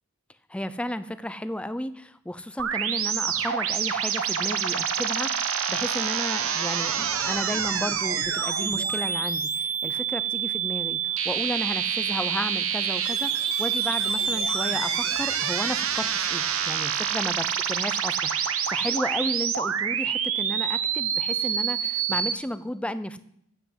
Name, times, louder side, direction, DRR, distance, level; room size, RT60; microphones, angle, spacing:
voice 1, 0.5-23.2, left 1 dB, 5° left, 13 dB, 0.5 m, -33 dB
sound 1, 2.6-22.3, right 7 dB, 65° right, 1.1 m, -27 dB
14.0 x 5.8 x 7.9 m, 0.72 s
head